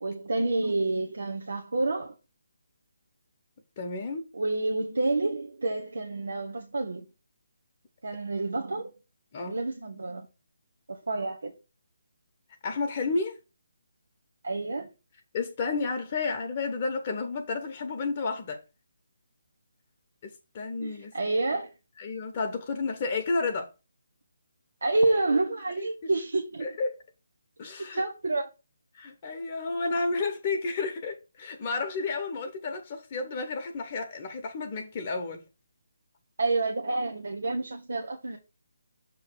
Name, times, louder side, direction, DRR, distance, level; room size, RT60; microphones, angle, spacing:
voice 1, 0.0-2.1 4.3-7.1 8.0-8.9 9.4-10.3 10.9-11.5 14.4-14.9 20.8-21.7 24.8-26.7 27.9-28.5 36.4-38.4, right 2 dB, 75° right, 1.0 m, -28 dB
voice 2, 3.8-4.3 9.3-9.6 12.6-13.4 15.3-18.6 20.2-21.2 22.0-23.7 25.8-25.9 26.6-26.9 27.6-28.0 28.9-35.4, left 3 dB, 35° left, 0.9 m, -31 dB
6.9 x 3.0 x 5.9 m
figure-of-eight pair, 155°, 0 cm